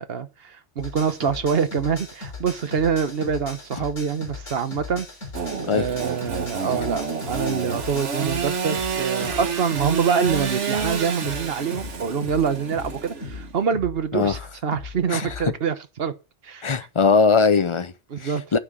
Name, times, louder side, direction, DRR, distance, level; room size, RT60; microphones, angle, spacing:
voice 1, 0.0-5.1 5.7-16.1 16.4-16.9 18.1-18.4, right 6 dB, 60° right, 1.1 m, -25 dB
sound 1, 0.8-15.5, left 3 dB, 80° left, 3.8 m, -38 dB
Engine / Sawing, 5.3-13.6, right 6 dB, 75° right, 1.6 m, -29 dB
voice 2, 16.6-17.9 18.2-18.6, left 5 dB, 35° left, 0.5 m, -20 dB
9.8 x 6.3 x 7.3 m
omnidirectional pair, 1.2 m